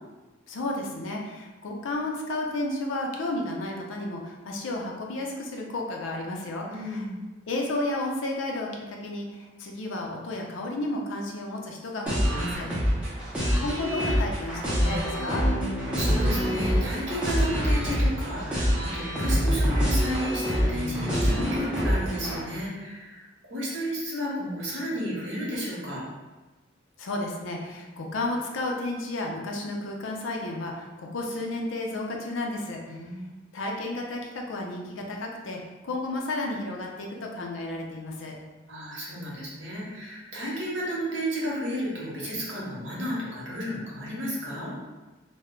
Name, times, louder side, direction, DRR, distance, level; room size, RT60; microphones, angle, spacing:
voice 1, 0.5-7.0 7.5-12.7 13.6-15.4 27.0-33.1 33.5-38.4, left 2 dB, 70° left, 0 dB, 0.5 m, -32 dB
voice 2, 6.7-7.1 15.9-26.0 32.9-33.4 38.7-44.8, equal, 65° right, -5 dB, 0.9 m, -32 dB
sound 1, 12.1-22.4, equal, 5° right, 0.6 m, -26 dB
2.2 x 2.0 x 3.6 m, 1.2 s
head